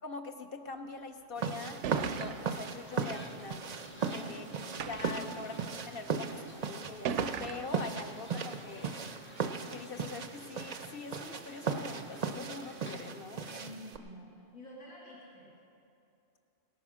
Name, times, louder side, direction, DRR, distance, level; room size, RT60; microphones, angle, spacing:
voice 1, 0.0-3.6 4.1-4.5 4.9-5.6 5.9-8.9 9.7-13.5, left 4 dB, 55° left, 6 dB, 0.8 m, -43 dB
sound 1, 1.2-1.3 1.8-2.6 3.5-3.6 4.8-5.3 6.2-6.3 7.1-7.8, right 7 dB, 70° right, 0.8 m, -37 dB
sound 2, 1.4-14.0, right 5 dB, 50° right, 0.5 m, -37 dB
sound 3, 1.6-13.0, left 1 dB, 15° left, 0.4 m, -54 dB
voice 2, 4.0-5.4 13.4-15.6, left 1 dB, 85° left, -5 dB, 2.5 m, -50 dB
17.0 x 9.3 x 6.2 m, 2.6 s
omnidirectional pair, 1.4 m